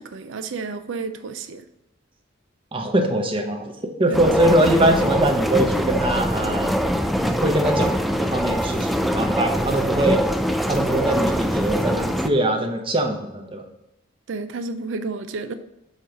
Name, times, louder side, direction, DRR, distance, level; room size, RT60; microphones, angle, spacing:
voice 1, 0.0-1.6 4.1-4.4 14.3-15.5, right 4 dB, 75° right, 9 dB, 0.5 m, -31 dB
voice 2, 2.7-3.7 4.0-6.7 7.2-7.9 8.2-8.9 9.1-10.2 10.7-13.6, right 1 dB, 30° right, 3 dB, 0.9 m, -22 dB
sound 1, 4.1-12.3, equal, ahead, 0.3 m, -23 dB
8.3 x 3.0 x 5.2 m, 0.91 s
head